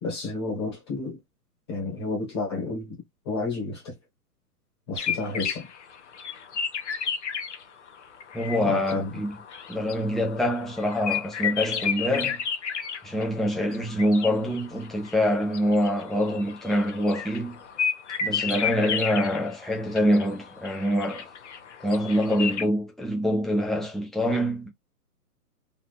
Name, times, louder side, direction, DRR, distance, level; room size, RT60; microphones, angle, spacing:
voice 1, 0.0-1.2 1.7-3.0 3.2-3.9 4.9-5.7 8.6-9.1, left 3 dB, 15° left, 1.0 m, -31 dB
sound 1, 5.0-7.6 7.9-22.7, left 7 dB, 50° left, 0.7 m, -32 dB
voice 2, 8.3-9.4 9.7-12.4 13.0-17.6 18.2-21.3 21.8-24.7, equal, ahead, 0.3 m, -25 dB
3.2 x 2.6 x 2.3 m
hypercardioid pair, 170°, 47 cm